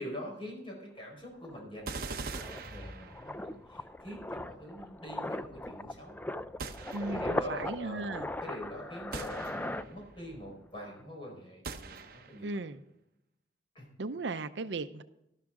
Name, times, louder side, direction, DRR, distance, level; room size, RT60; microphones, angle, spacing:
voice 1, 0.0-6.2 6.7-12.5 13.7-13.9, equal, 30° left, 0 dB, 4.8 m, -44 dB
sound 1, 1.0-1.1 1.4-10.5 10.7-11.0, left 1 dB, 10° left, 0.3 m, -39 dB
sound 2, 1.9-3.5 6.6-7.5 9.1-10.0 11.6-12.5, right 4 dB, 50° right, 0.9 m, -42 dB
voice 2, 6.9-8.3 12.4-12.8 14.0-15.0, right 3 dB, 75° right, 11 dB, 0.6 m, -36 dB
12.5 x 12.0 x 3.7 m, 0.84 s
head